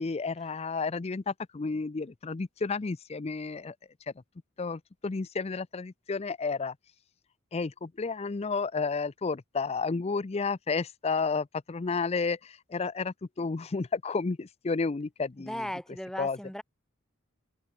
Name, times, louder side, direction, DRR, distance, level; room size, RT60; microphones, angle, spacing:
voice 1, 0.0-3.7 4.6-6.7 7.5-15.6 16.2-16.4, left 4 dB, 30° left, 0.5 m, -31 dB
voice 2, 15.4-16.6, equal, 5° left, 3.1 m, -37 dB
head